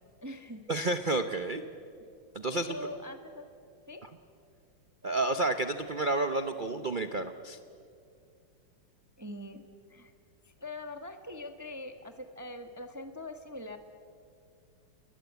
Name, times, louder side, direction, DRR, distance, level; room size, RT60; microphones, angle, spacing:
voice 1, 0.0-0.6 2.5-3.4 3.9-4.0 9.2-9.6 9.9-10.1 10.4-13.8, left 1 dB, 10° right, 7 dB, 1.0 m, -43 dB
voice 2, 0.7-1.6 2.3-2.8 4.0-4.1 5.0-7.6, right 2 dB, 85° right, 9 dB, 0.4 m, -30 dB
29.0 x 21.5 x 8.2 m, 2.4 s
omnidirectional pair, 2.3 m